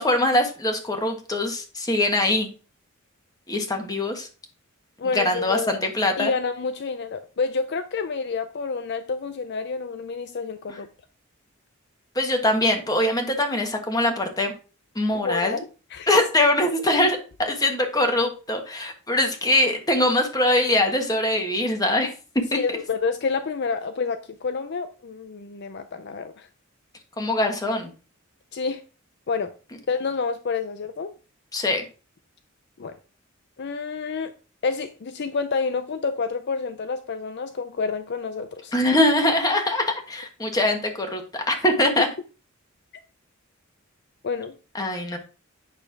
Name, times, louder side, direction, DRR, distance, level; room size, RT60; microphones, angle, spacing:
voice 1, 0.0-2.5 3.5-4.3 5.1-6.3 10.7-10.8 12.1-14.5 14.9-15.6 16.1-22.1 22.5-22.6 27.2-27.9 31.5-31.8 38.7-42.1 44.7-45.2, left 1 dB, 20° left, 1.4 m, -22 dB
voice 2, 5.0-5.8 6.2-10.9 15.1-15.7 15.9-16.1 17.0-17.1 22.5-26.5 28.5-28.8 29.3-29.5 29.9-31.1 32.8-32.9 33.6-34.3 34.6-38.7 44.2-44.5, left 4 dB, 55° left, 0.5 m, -28 dB
8.9 x 3.3 x 5.8 m
head